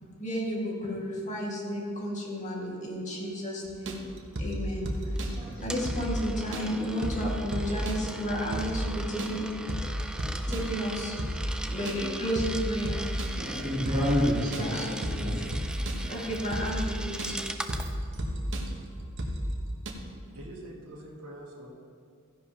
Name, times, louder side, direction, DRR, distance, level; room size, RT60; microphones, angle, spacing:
voice 1, 0.0-4.0 4.4-4.9 5.3-9.8 10.5-11.2 11.7-13.1 14.6-15.3 16.1-17.4, equal, 35° left, -3 dB, 2.0 m, -33 dB
sound 1, 3.7-19.9, equal, 60° right, 1.1 m, -33 dB
voice 2, 5.1-5.7 13.4-14.7 15.2-15.4 16.0-16.2, equal, 25° right, -14 dB, 2.9 m, -29 dB
Coin (dropping), 5.2-17.9, right 1 dB, 5° right, 0.4 m, -40 dB
voice 3, 20.2-21.7, right 1 dB, 75° right, -3 dB, 1.8 m, -44 dB
14.5 x 10.5 x 2.9 m, 2.2 s
head